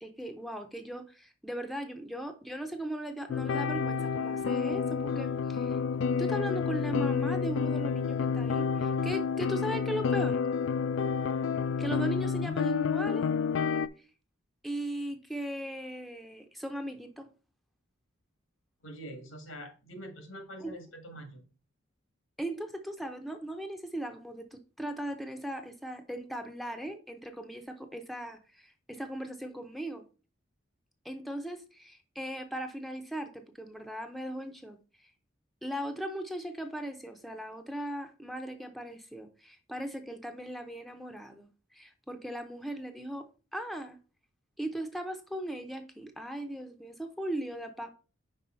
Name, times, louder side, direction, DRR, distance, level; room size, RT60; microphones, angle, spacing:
voice 1, 0.0-5.8 6.2-10.4 11.8-13.3 14.6-17.3 20.6-20.8 22.4-30.0 31.0-34.8 35.6-43.3 43.5-44.0 44.6-47.9, right 1 dB, ahead, 5 dB, 0.6 m, -38 dB
sound 1, 3.3-13.9, left 6 dB, 70° left, 0.3 m, -29 dB
voice 2, 18.8-21.4, equal, 85° left, 5 dB, 1.7 m, -45 dB
5.4 x 4.7 x 4.3 m, 0.35 s
head